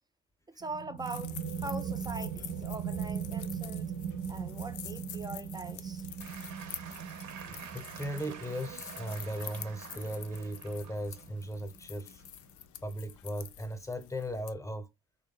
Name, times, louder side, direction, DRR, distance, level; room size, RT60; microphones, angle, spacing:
voice 1, 0.5-3.9 4.3-6.0, right 2 dB, 15° right, 0.4 m, -42 dB
sound 1, 0.6-12.0, right 7 dB, 55° right, 0.7 m, -40 dB
sound 2, 1.0-14.5, left 12 dB, 75° left, 0.5 m, -48 dB
Applause / Crowd, 6.2-12.5, right 8 dB, 80° right, 0.9 m, -49 dB
voice 2, 7.5-12.2 12.8-14.9, equal, 10° left, 0.8 m, -37 dB
3.1 x 2.2 x 3.7 m
cardioid pair, 90°, 30 cm